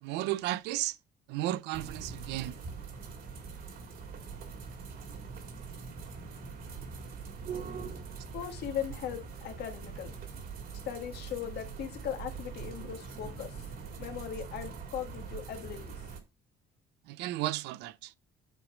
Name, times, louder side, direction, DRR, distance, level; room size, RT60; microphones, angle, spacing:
voice 1, 0.0-1.0 1.3-2.6 17.1-18.1, right 15 dB, 90° right, 0.5 m, -34 dB
sound 1, 1.7-16.2, right 5 dB, 60° right, 2.2 m, -43 dB
voice 2, 8.3-10.1 10.8-13.5 14.0-16.0, left 9 dB, 75° left, 1.6 m, -38 dB
9.0 x 3.1 x 5.0 m
cardioid pair, 110°, 17 cm